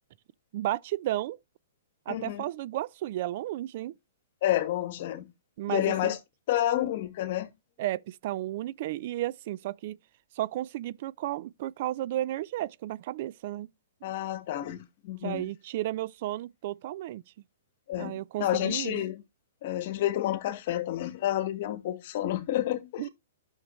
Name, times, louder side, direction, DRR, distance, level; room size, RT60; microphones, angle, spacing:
voice 1, 0.5-1.4 2.1-3.9 5.6-6.1 7.8-10.0 10.4-13.7 15.2-17.2 18.0-19.0 23.0-23.1, right 14 dB, 50° right, 0.4 m, -33 dB
voice 2, 2.1-2.4 4.4-5.3 5.7-6.2 6.5-7.5 14.0-15.4 17.9-19.2 19.6-23.1, left 13 dB, 50° left, 1.4 m, -29 dB
11.5 x 6.5 x 3.1 m
hypercardioid pair, 135°, 0 cm